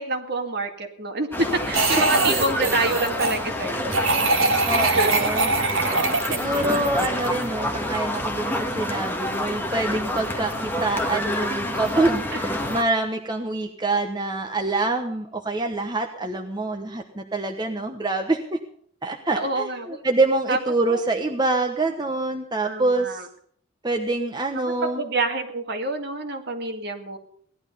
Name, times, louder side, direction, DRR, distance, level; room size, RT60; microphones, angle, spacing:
voice 1, 0.0-4.1 4.8-5.4 19.4-20.0 20.5-20.6 20.9-21.0 22.6-23.3 24.8-27.2, right 2 dB, 50° right, 4 dB, 2.2 m, -27 dB
sound 1, 1.3-12.8, left 1 dB, 10° left, 1.5 m, -28 dB
sound 2, 1.7-3.4 3.9-7.4, right 3 dB, 80° right, 2.7 m, -23 dB
voice 2, 4.6-5.5 6.3-18.6 19.0-23.3 23.8-25.0, right 2 dB, 20° right, 3 dB, 1.1 m, -26 dB
18.0 x 11.5 x 5.5 m, 0.62 s
head